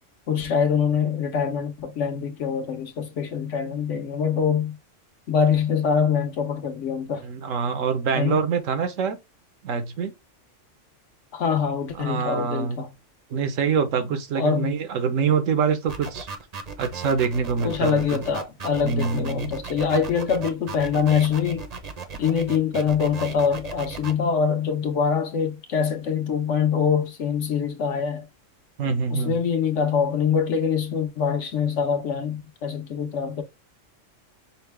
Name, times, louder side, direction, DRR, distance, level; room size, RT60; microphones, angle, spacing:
voice 1, 0.3-4.8 5.3-7.3 8.1-8.4 11.3-12.9 14.4-14.7 17.6-21.6 22.2-28.3 29.1-33.4, left 6 dB, 70° left, 1.2 m, -24 dB
voice 2, 7.2-9.2 9.6-10.1 12.0-12.9 13.3-16.3 16.8-18.2 18.8-19.5 28.8-29.4, right 6 dB, 80° right, 1.2 m, -25 dB
sound 1, 15.9-24.1, right 5 dB, 40° right, 0.6 m, -36 dB
5.6 x 2.2 x 3.3 m
omnidirectional pair, 1.3 m